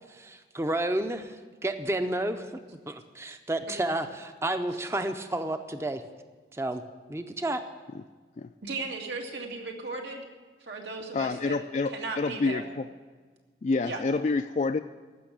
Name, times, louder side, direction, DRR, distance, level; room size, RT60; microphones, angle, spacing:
voice 1, 0.1-6.0 6.5-6.8 7.1-7.6, right 1 dB, 15° right, 8 dB, 0.5 m, -31 dB
voice 2, 8.6-10.3 10.6-11.6 11.9-12.6 13.8-14.0, right 3 dB, 85° right, 1 dB, 2.2 m, -36 dB
voice 3, 11.1-12.9 13.6-14.8, left 3 dB, 40° left, 8 dB, 0.3 m, -28 dB
15.0 x 6.3 x 9.9 m, 1.4 s
head